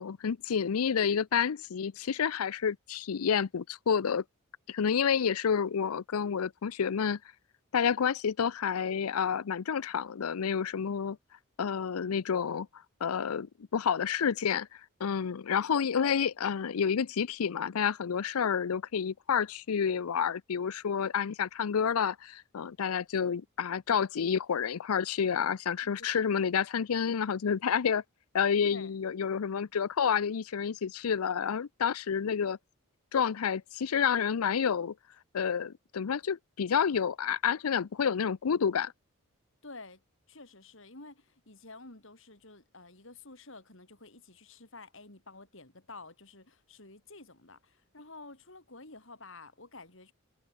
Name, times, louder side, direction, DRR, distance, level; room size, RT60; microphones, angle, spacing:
voice 1, 0.0-4.2 4.7-7.2 7.7-11.2 11.6-12.7 13.0-14.7 15.0-28.0 28.3-32.6 33.1-34.9 35.3-38.9, left 7 dB, 85° left, 0.5 m, -29 dB
voice 2, 39.6-40.0 40.3-50.1, left 3 dB, 60° left, 3.9 m, -50 dB
head